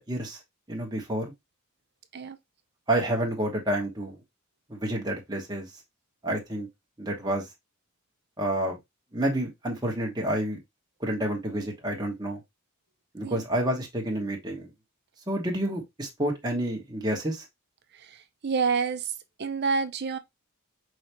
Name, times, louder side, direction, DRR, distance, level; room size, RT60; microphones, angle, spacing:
voice 1, 0.1-0.4 0.7-1.3 2.9-4.2 4.7-5.7 6.2-6.7 7.0-7.5 8.4-8.8 9.1-10.6 11.0-12.4 13.1-14.7 15.3-17.4, right 1 dB, 20° right, 1.1 m, -29 dB
voice 2, 18.0-19.1 19.4-20.2, right 5 dB, 50° right, 0.6 m, -28 dB
5.4 x 3.4 x 2.9 m
head